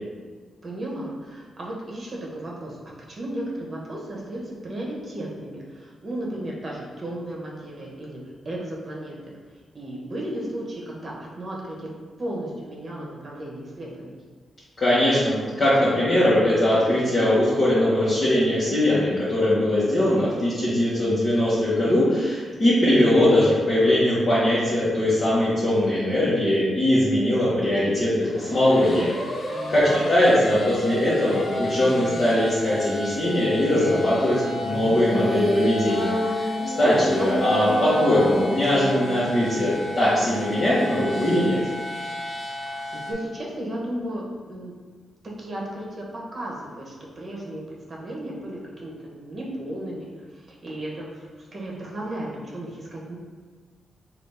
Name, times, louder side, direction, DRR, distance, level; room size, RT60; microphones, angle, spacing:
voice 1, 0.6-8.2 8.4-9.3 9.7-11.9 12.2-14.1 29.5-30.2 37.0-37.7 42.5-44.7 45.4-53.2, right 1 dB, 35° right, -3 dB, 1.0 m, -34 dB
voice 2, 14.8-29.1 29.7-36.5 36.8-41.6, left 1 dB, 40° left, -11 dB, 1.1 m, -21 dB
sound 1, 28.2-43.1, left 2 dB, 55° left, 0.8 m, -33 dB
sound 2, 30.6-32.4 34.7-39.7, equal, 15° left, 0.7 m, -29 dB
4.0 x 2.5 x 3.3 m, 1.5 s
cardioid pair, 100°, 0 cm